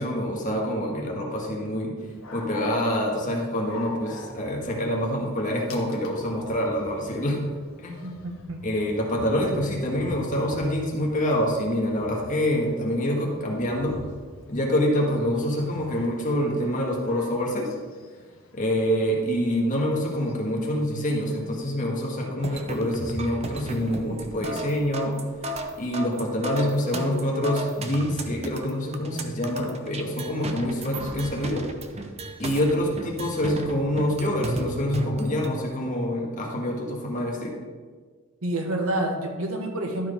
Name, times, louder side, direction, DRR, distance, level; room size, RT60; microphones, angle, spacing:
voice 1, 0.0-1.9 2.3-7.4 7.8-8.0 8.6-14.0 14.5-17.7 18.5-25.2 25.8-31.7 32.4-37.5, equal, 40° left, -1 dB, 1.6 m, -26 dB
Dog, 2.0-21.6, left 2 dB, 75° left, 1.2 m, -46 dB
voice 2, 8.0-8.7 38.4-40.1, right 1 dB, 85° right, 3 dB, 1.3 m, -28 dB
sound 1, 22.4-35.5, right 1 dB, 30° right, 0.6 m, -34 dB
12.0 x 4.6 x 5.1 m, 1.5 s
head